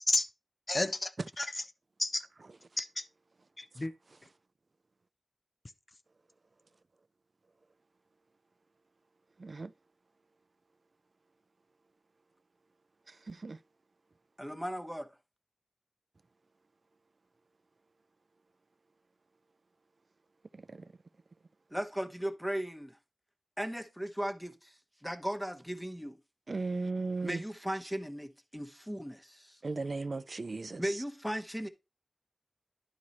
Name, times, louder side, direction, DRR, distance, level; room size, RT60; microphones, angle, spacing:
voice 1, 0.7-1.7 2.0-2.2 2.8-3.0 3.6-3.9, left 2 dB, 40° left, 0.7 m, -31 dB
voice 2, 14.4-15.1 21.7-23.0 23.6-24.7 25.0-26.2 27.2-29.6 30.8-31.7, equal, ahead, 1.1 m, -37 dB
voice 3, 26.5-27.4 29.6-30.8, right 3 dB, 60° right, 0.4 m, -35 dB
11.0 x 4.7 x 4.2 m
wide cardioid pair, 75°, 0 cm